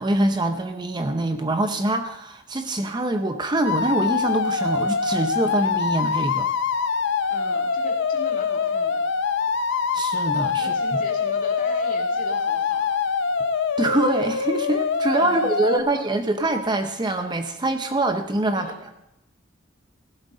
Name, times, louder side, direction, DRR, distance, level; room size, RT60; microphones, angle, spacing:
voice 1, 0.0-6.5 9.9-10.7 13.8-18.7, right 2 dB, 20° right, 7 dB, 0.6 m, -24 dB
sound 1, 3.6-15.8, left 5 dB, 60° left, 0.6 m, -24 dB
voice 2, 7.3-9.1 10.5-13.0 15.2-15.9 18.5-18.8, left 2 dB, 40° left, 0 dB, 2.4 m, -40 dB
15.5 x 11.5 x 3.7 m, 0.88 s
head